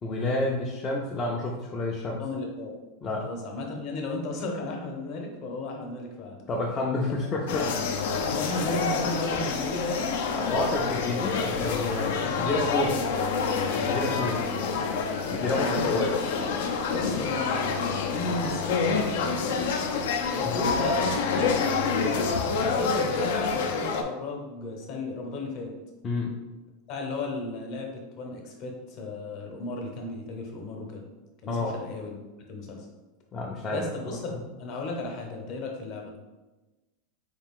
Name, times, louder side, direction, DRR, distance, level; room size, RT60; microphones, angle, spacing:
voice 1, 0.0-2.2 3.0-3.2 6.5-7.7 10.4-12.9 13.7-14.4 15.3-16.1 20.4-20.9 26.0-26.3 31.5-31.8 33.3-34.2, left 2 dB, 20° left, -3 dB, 0.4 m, -29 dB
voice 2, 2.2-2.7 3.2-6.4 7.2-7.3 8.1-10.1 12.0-13.1 13.7-14.4 15.3-16.2 16.9-19.8 20.3-25.7 26.9-31.0 31.4-32.1 32.5-32.9 33.7-34.2 34.6-36.1, left 2 dB, 40° left, 1 dB, 0.8 m, -34 dB
sound 1, 7.5-24.0, left 5 dB, 75° left, 0.5 m, -27 dB
4.4 x 2.4 x 3.6 m, 1.1 s
supercardioid pair, 170°, 0 cm